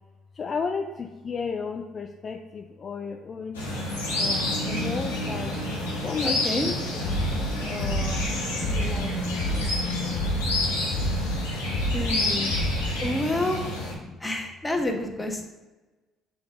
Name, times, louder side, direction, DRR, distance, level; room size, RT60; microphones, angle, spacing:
voice 1, 0.3-3.6 4.1-5.6 6.0-7.3 7.6-10.1 12.5-13.1 14.0-14.2, left 5 dB, 40° left, 5 dB, 0.5 m, -35 dB
sound 1, 3.5-13.9, left 1 dB, 90° left, 1.5 m, -29 dB
voice 2, 6.2-6.7 11.9-12.5 13.0-13.6 14.2-15.5, left 1 dB, 10° left, 3 dB, 1.3 m, -28 dB
sound 2, 7.0-13.1, equal, 65° left, 0.8 m, -29 dB
7.0 x 3.5 x 5.4 m, 1.2 s
hypercardioid pair, 55°, 0 cm